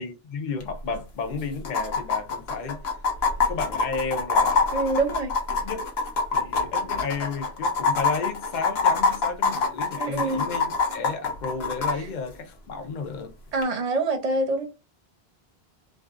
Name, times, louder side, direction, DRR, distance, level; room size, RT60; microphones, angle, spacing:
voice 1, 0.0-2.8 3.5-4.7 5.5-5.9 6.3-13.3, left 4 dB, 55° left, 0.7 m, -33 dB
sound 1, 0.6-0.7 0.9-1.0 1.6-11.9 13.6-13.7, left 4 dB, 80° left, 1.0 m, -24 dB
voice 2, 4.7-5.3 10.0-10.5 13.5-14.7, right 2 dB, 40° right, 0.7 m, -25 dB
2.5 x 2.3 x 2.4 m
omnidirectional pair, 1.1 m